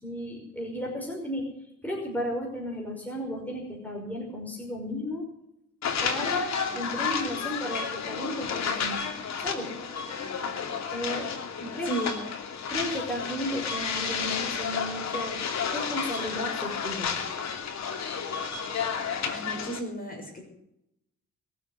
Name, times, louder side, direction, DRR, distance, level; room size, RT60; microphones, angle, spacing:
voice 1, 0.0-1.5 1.8-5.3 6.0-9.0 9.4-9.7 10.9-11.3 11.7-11.9 12.7-15.4 15.7-17.1, equal, 5° left, -1 dB, 5.6 m, -34 dB
sound 1, 5.8-19.8, left 6 dB, 60° left, 2.9 m, -31 dB
voice 2, 11.6-12.2 19.1-20.5, right 1 dB, 30° left, 2 dB, 6.4 m, -35 dB
21.5 x 8.0 x 8.1 m, 0.79 s
cardioid pair, 90°, 30 cm